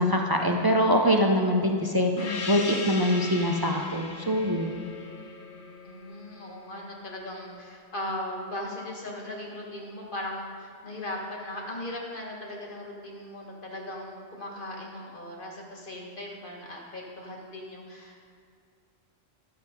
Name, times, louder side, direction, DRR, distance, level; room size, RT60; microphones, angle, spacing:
voice 1, 0.0-4.8, equal, 35° right, 2 dB, 0.4 m, -24 dB
Gong, 2.2-7.2, left 3 dB, 65° left, 1.2 m, -37 dB
voice 2, 5.8-18.2, left 1 dB, 45° left, -1 dB, 1.6 m, -38 dB
11.5 x 7.4 x 5.2 m, 2.2 s
omnidirectional pair, 1.3 m